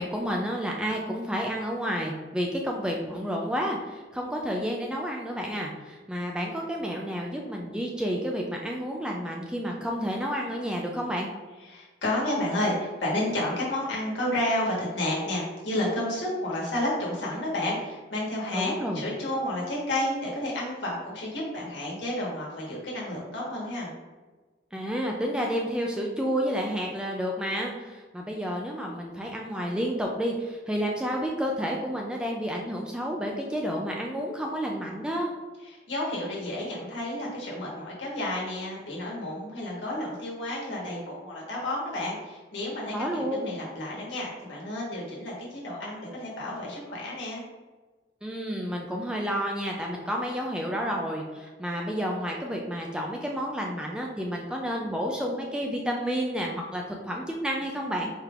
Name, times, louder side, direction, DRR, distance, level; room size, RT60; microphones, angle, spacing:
voice 1, 0.0-11.3 18.6-19.0 24.7-35.3 42.9-43.5 48.2-58.1, equal, 5° right, 0 dB, 0.3 m, -30 dB
voice 2, 11.6-23.9 35.6-47.4, left 1 dB, 75° left, -4 dB, 1.3 m, -31 dB
4.4 x 3.4 x 2.4 m, 1.3 s
head